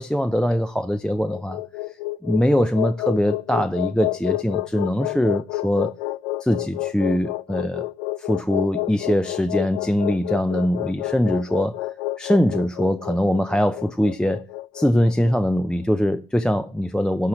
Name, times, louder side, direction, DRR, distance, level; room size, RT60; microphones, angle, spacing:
voice 1, 0.0-1.6 2.2-5.9 6.4-7.9 8.2-11.8 12.2-14.5 14.7-17.3, equal, ahead, 0.5 m, -22 dB
sound 1, 1.1-15.4, left 17 dB, 80° left, 0.8 m, -29 dB
12.0 x 5.0 x 7.2 m
supercardioid pair, 100°, 40 cm